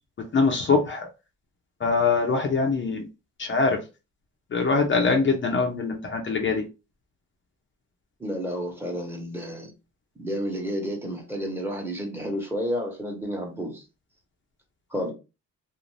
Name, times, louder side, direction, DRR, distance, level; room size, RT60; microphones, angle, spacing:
voice 1, 0.3-1.1 1.8-3.0 3.4-3.8 4.5-6.6, left 4 dB, 40° left, 0.6 m, -23 dB
voice 2, 8.2-9.7 10.2-13.8 14.9-15.1, equal, 5° right, 1.0 m, -31 dB
2.6 x 2.0 x 3.2 m
cardioid pair, 90°, 30 cm